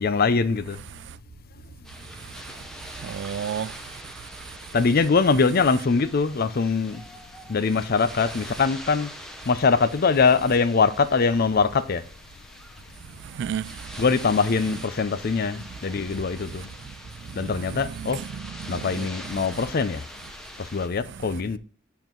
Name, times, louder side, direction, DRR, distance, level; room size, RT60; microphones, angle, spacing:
voice 1, 0.0-0.8 4.7-7.0 7.5-9.1 9.4-12.0 14.0-16.7 17.3-18.2 18.7-20.0 20.6-21.6, left 4 dB, 50° left, 0.5 m, -22 dB
sound 1, 1.8-20.9, equal, 5° left, 0.8 m, -43 dB
voice 2, 3.0-3.7 13.4-13.7 17.4-18.1 18.6-19.1 19.4-19.5, right 8 dB, 60° right, 0.3 m, -32 dB
7.3 x 4.6 x 3.8 m
head